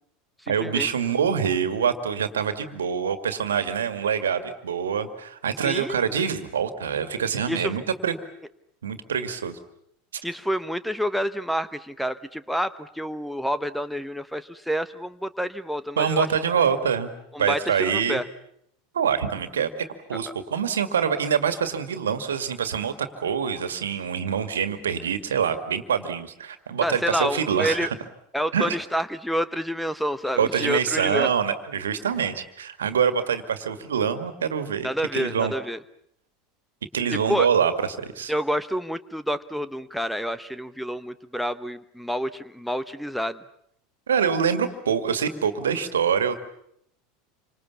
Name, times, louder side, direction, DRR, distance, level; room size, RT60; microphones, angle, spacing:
voice 1, 0.5-8.2 8.8-9.6 16.0-17.1 17.4-18.2 18.9-19.7 20.1-27.9 28.5-28.8 30.4-35.5 36.9-38.3 44.1-46.3, right 7 dB, 70° right, 10 dB, 2.1 m, -25 dB
voice 2, 5.6-6.0 7.5-7.8 10.2-16.3 17.3-18.2 26.8-27.9 28.3-31.3 34.8-35.8 37.3-37.5 38.3-43.4, equal, ahead, 14 dB, 1.1 m, -28 dB
28.0 x 26.0 x 7.2 m, 0.74 s
figure-of-eight pair, 80°, 0 cm